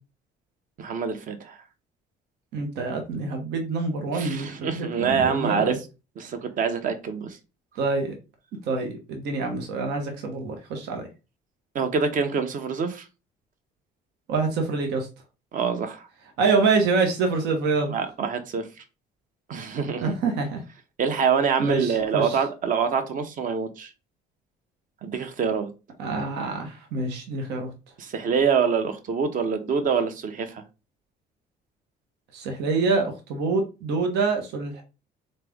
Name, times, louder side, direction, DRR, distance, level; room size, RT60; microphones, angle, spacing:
voice 1, 0.8-1.6 4.1-5.9 6.2-7.4 11.7-13.1 15.5-16.1 17.9-18.7 19.5-20.2 21.0-23.9 25.0-25.7 28.0-30.6, right 6 dB, 50° right, 0.9 m, -25 dB
voice 2, 2.5-5.8 7.8-8.1 8.7-11.1 14.3-15.1 16.4-17.9 20.0-20.6 21.6-22.4 26.0-27.7 32.3-34.8, right 4 dB, 85° right, 1.1 m, -26 dB
3.9 x 3.3 x 3.5 m
cardioid pair, 110°, 17 cm